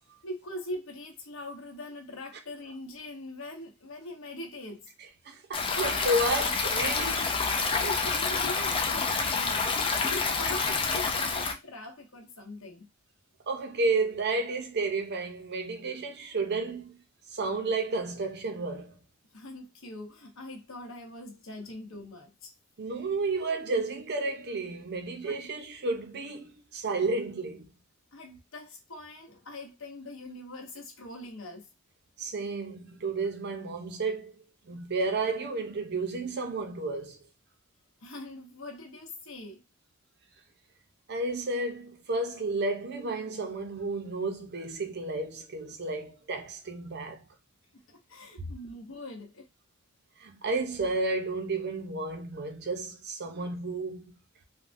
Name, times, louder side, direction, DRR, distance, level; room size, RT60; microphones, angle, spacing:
voice 1, 0.2-4.9 7.7-12.9 19.3-22.5 25.3-25.4 28.1-31.7 38.0-39.6 47.9-49.5, left 1 dB, 65° left, 0.9 m, -42 dB
voice 2, 5.3-7.4 13.5-17.0 17.3-19.0 22.8-27.7 32.2-34.3 34.7-37.2 41.1-47.2 48.4-48.5 50.2-54.1, right 3 dB, 50° right, 0.6 m, -32 dB
Stream, 5.5-11.5, left 4 dB, 25° left, 0.4 m, -28 dB
3.4 x 2.2 x 2.5 m
head